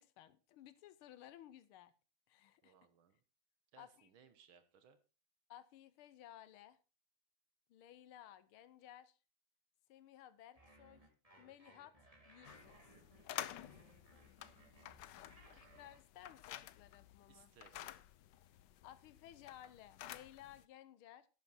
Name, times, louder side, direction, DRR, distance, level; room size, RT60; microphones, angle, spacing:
voice 1, 0.0-1.9 2.3-2.8 3.8-4.1 5.5-6.8 7.7-9.2 9.9-11.0 11.4-11.9 12.3-12.8 15.6-17.5 18.8-21.3, left 11 dB, 90° left, 15 dB, 1.7 m, -58 dB
voice 2, 2.6-3.2 3.7-5.0 17.3-17.9, right 7 dB, 75° right, 11 dB, 1.9 m, -65 dB
sound 1, 10.6-16.0, right 1 dB, 15° right, 3.0 m, -64 dB
sound 2, 12.4-20.6, left 13 dB, 70° left, 1.2 m, -51 dB
11.5 x 9.8 x 4.1 m, 0.32 s
omnidirectional pair, 2.3 m